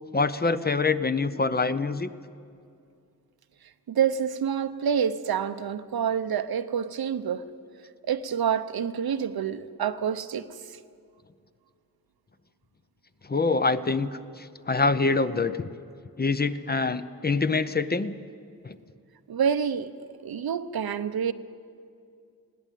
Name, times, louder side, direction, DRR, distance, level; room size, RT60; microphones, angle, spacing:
voice 1, 0.1-2.1 13.2-15.7 16.2-18.1 18.6-18.8, left 3 dB, 25° left, 0.6 m, -25 dB
voice 2, 3.9-7.4 8.0-10.8 19.3-19.9 20.2-21.3, right 7 dB, 80° right, 0.8 m, -27 dB
20.0 x 17.5 x 9.2 m
wide cardioid pair, 150°, 36 cm